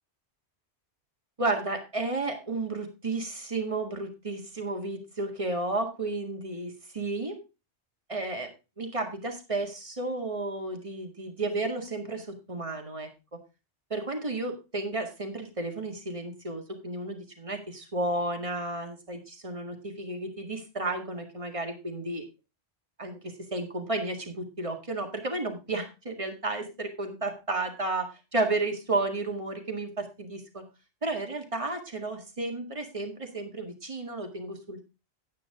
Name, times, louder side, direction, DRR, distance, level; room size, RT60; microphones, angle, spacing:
voice 1, 1.4-7.4 8.1-13.1 13.9-22.3 23.0-30.6 31.0-34.8, right 2 dB, 30° right, 4 dB, 1.9 m, -32 dB
9.6 x 9.1 x 3.7 m, 0.28 s
omnidirectional pair, 1.2 m